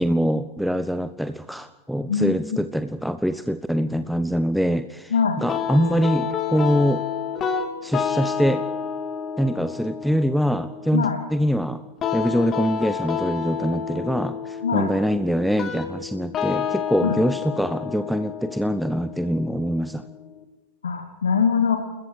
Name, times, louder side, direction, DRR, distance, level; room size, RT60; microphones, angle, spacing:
voice 1, 0.0-7.0 7.8-8.7 9.4-11.8 12.1-20.0, equal, ahead, 11 dB, 0.9 m, -24 dB
voice 2, 5.1-5.4 10.9-11.2 14.6-14.9 17.0-17.2 20.8-21.8, left 6 dB, 70° left, 5 dB, 2.4 m, -22 dB
sound 1, 5.5-20.4, left 7 dB, 30° left, 2.9 m, -30 dB
30.0 x 21.0 x 4.9 m, 1.1 s
figure-of-eight pair, 90°, 0 cm